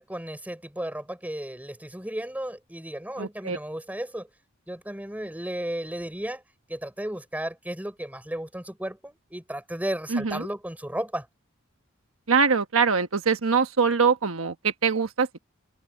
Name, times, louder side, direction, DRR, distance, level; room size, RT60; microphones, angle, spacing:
voice 1, 0.0-4.3 4.7-6.4 6.7-11.3, right 1 dB, 10° right, 5.2 m, -34 dB
voice 2, 3.2-3.6 10.1-10.5 12.3-15.4, right 5 dB, 80° right, 1.2 m, -23 dB
head